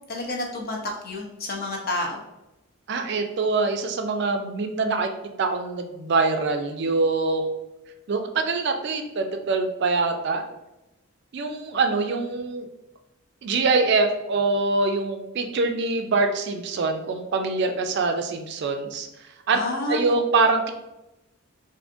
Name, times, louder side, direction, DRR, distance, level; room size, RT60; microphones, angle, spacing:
voice 1, 0.1-0.8 1.0-2.2 19.5-20.1, left 2 dB, 45° left, -1 dB, 0.6 m, -29 dB
voice 2, 2.9-5.1 5.4-7.5 8.1-10.4 11.3-12.7 13.4-19.1 19.5-19.6 19.9-20.7, right 3 dB, 55° right, 5 dB, 0.4 m, -24 dB
3.6 x 2.6 x 2.5 m, 0.96 s
head